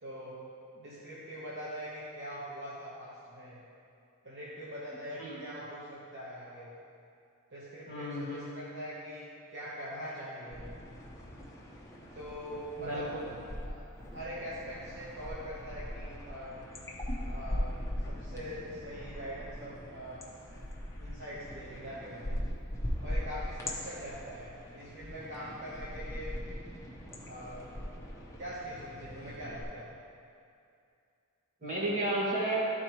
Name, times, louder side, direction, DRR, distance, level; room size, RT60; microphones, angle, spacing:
voice 1, 0.0-3.7 4.2-6.8 7.5-10.7 12.1-13.1 13.6-16.6 17.2-20.3 21.0-22.4 23.0-26.4 27.3-27.8 28.4-30.0, equal, 55° right, -8 dB, 1.0 m, -43 dB
voice 2, 5.1-5.4 7.9-8.5 12.8-13.0 31.6-32.6, right 1 dB, 35° right, -7 dB, 1.8 m, -32 dB
sound 1, 10.5-13.7 13.9-29.6, equal, 15° left, 0.8 m, -40 dB
12.0 x 4.2 x 3.0 m, 2.5 s
head